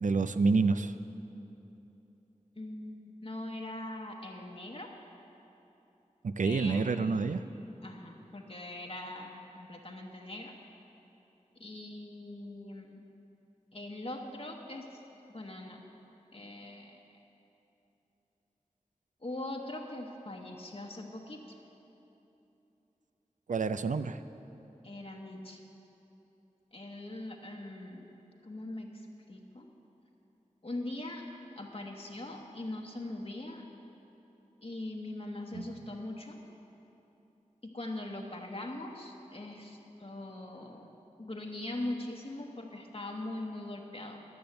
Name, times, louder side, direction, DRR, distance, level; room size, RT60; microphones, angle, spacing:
voice 1, 0.0-0.9 6.2-7.4 23.5-24.2 35.5-35.7, right 4 dB, 75° right, 11 dB, 0.4 m, -28 dB
voice 2, 2.6-4.9 6.4-6.8 7.8-10.5 11.6-13.0 13.7-15.0 15.3-15.8 16.3-17.0 19.2-21.6 24.8-25.6 26.7-29.7 30.6-31.3 31.6-33.6 34.6-36.4 37.6-40.9 41.2-44.2, left 1 dB, 50° left, 0 dB, 1.0 m, -41 dB
12.0 x 7.0 x 7.9 m, 3.0 s
wide cardioid pair, 45°, 13 cm